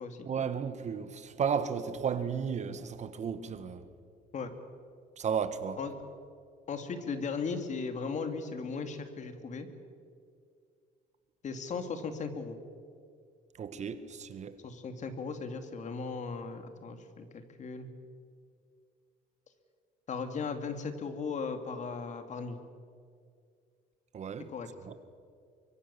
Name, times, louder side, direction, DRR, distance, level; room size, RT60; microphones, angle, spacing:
voice 1, 0.3-3.9 5.2-5.8 13.6-14.6 24.1-24.5 24.8-25.1, right 7 dB, 45° right, 1.7 m, -34 dB
voice 2, 6.7-9.7 11.4-12.6 14.6-17.9 20.1-22.6 24.5-24.7, left 5 dB, 45° left, 2.6 m, -37 dB
24.5 x 23.0 x 7.1 m
cardioid pair, 110°, 17 cm